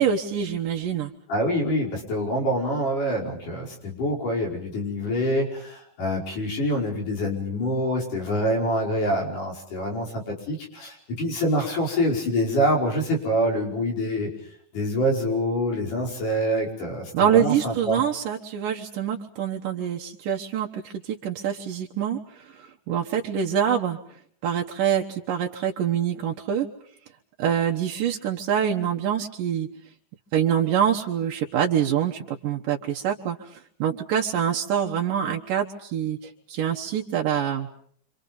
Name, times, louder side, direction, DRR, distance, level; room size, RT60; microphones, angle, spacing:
voice 1, 0.0-1.1 17.1-24.0 24.4-26.7 27.4-29.7 30.3-37.7, right 9 dB, 80° right, 1 dB, 2.8 m, -25 dB
voice 2, 1.3-14.3 14.7-18.0, equal, 70° left, 0 dB, 6.8 m, -26 dB
29.0 x 26.0 x 5.5 m, 0.62 s
omnidirectional pair, 3.8 m